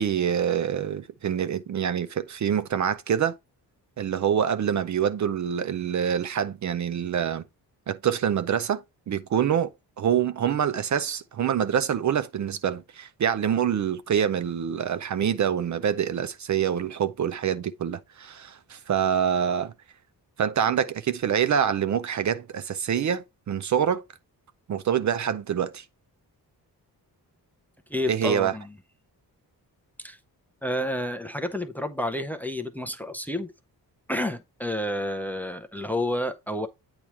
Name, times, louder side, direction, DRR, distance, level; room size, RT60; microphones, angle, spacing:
voice 1, 0.0-3.4 4.0-7.4 7.9-9.7 10.0-19.7 20.4-24.0 24.7-25.8 28.1-28.5, right 8 dB, 50° right, 0.5 m, -26 dB
voice 2, 27.9-28.7 30.0-30.2 30.6-33.5 34.1-36.7, left 1 dB, 5° left, 0.6 m, -30 dB
8.7 x 2.9 x 4.6 m
wide cardioid pair, 145°, 38 cm